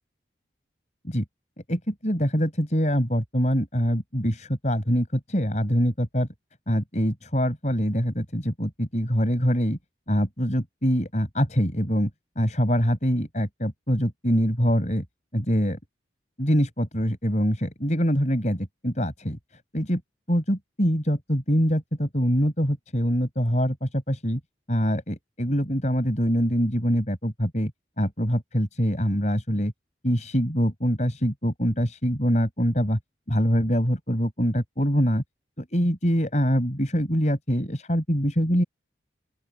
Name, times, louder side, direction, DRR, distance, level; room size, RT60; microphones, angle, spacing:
voice 1, 1.7-6.3 6.7-9.8 10.1-12.1 12.4-15.0 15.3-15.8 16.4-19.4 19.7-20.0 20.3-24.4 24.7-27.7 28.0-29.7 30.0-33.0 33.3-35.2 35.6-38.6, equal, 40° left, 6.0 m, -24 dB
open air
head